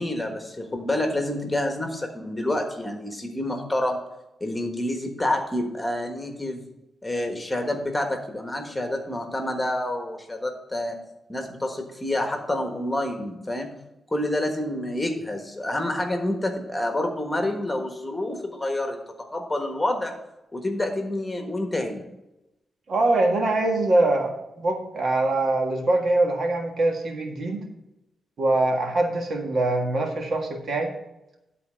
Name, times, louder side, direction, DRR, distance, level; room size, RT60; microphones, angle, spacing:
voice 1, 0.0-4.0 4.4-6.7 7.0-11.0 11.3-13.7 14.1-19.0 19.3-20.1 20.5-22.0, left 1 dB, 15° left, 4 dB, 1.4 m, -28 dB
voice 2, 22.9-27.6 28.4-30.9, right 2 dB, 65° right, 2 dB, 1.6 m, -23 dB
10.5 x 4.1 x 6.3 m, 0.92 s
cardioid pair, 95°, 0 cm